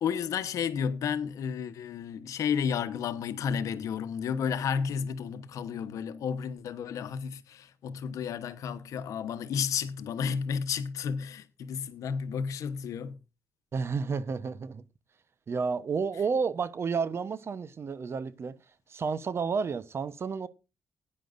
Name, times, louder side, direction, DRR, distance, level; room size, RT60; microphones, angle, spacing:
voice 1, 0.0-13.2, left 7 dB, 80° left, 1.0 m, -32 dB
voice 2, 13.7-14.8 15.5-18.5 18.9-20.5, right 5 dB, 50° right, 0.9 m, -31 dB
17.5 x 9.9 x 2.5 m
cardioid pair, 80°, 5 cm